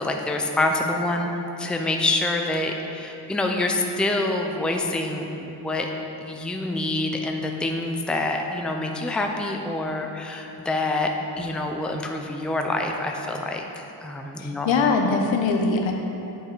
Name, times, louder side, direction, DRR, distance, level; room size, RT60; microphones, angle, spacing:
voice 1, 0.0-1.3 1.6-5.9 6.2-11.1 11.4-14.7, left 2 dB, ahead, 2 dB, 0.6 m, -26 dB
voice 2, 14.4-15.9, left 4 dB, 70° left, 3 dB, 1.0 m, -22 dB
8.6 x 5.1 x 4.1 m, 2.9 s
cardioid pair, 70°, 48 cm